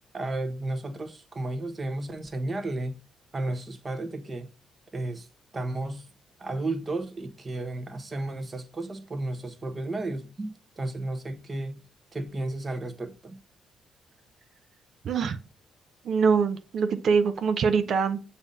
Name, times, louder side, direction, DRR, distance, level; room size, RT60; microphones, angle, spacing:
voice 1, 0.1-3.0 3.3-4.5 4.9-5.3 5.5-6.1 6.4-11.8 12.1-13.4, right 2 dB, 30° right, 1.1 m, -33 dB
voice 2, 15.0-15.4 16.0-18.2, right 5 dB, 60° right, 0.6 m, -24 dB
7.0 x 2.8 x 5.2 m
cardioid pair, 90°, 0 cm